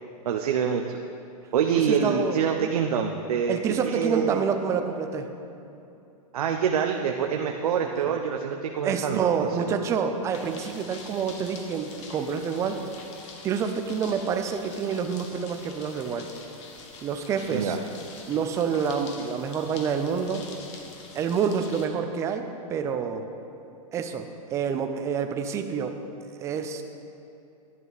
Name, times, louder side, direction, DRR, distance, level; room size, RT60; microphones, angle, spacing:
voice 1, 0.2-0.8 1.5-3.6 3.8-4.4 6.3-9.8 17.5-17.8, right 7 dB, 80° right, 3 dB, 0.7 m, -26 dB
voice 2, 1.7-2.7 3.5-5.3 8.0-8.2 8.8-12.8 13.4-16.3 17.0-17.8 18.3-20.5 21.1-23.2 23.9-26.0 26.4-26.8, right 6 dB, 15° right, 7 dB, 0.5 m, -28 dB
sound 1, 10.3-21.9, left 4 dB, 50° left, 1.4 m, -45 dB
11.0 x 9.0 x 4.0 m, 2.8 s
hypercardioid pair, 155°, 19 cm